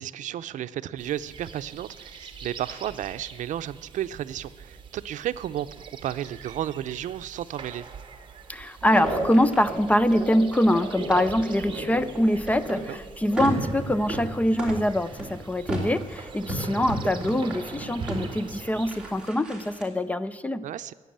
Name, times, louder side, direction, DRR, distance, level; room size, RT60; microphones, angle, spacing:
voice 1, 0.0-7.9 12.9-13.0 20.6-20.9, right 11 dB, 90° right, 13 dB, 0.5 m, -33 dB
sound 1, 1.0-19.3, right 5 dB, 40° right, 1.5 m, -44 dB
voice 2, 8.5-20.7, left 1 dB, 10° left, 14 dB, 0.5 m, -24 dB
sound 2, 8.8-12.9 13.3-19.8, right 1 dB, 5° right, 2.9 m, -33 dB
14.5 x 9.6 x 8.6 m, 1.5 s
wide cardioid pair, 155°, 13 cm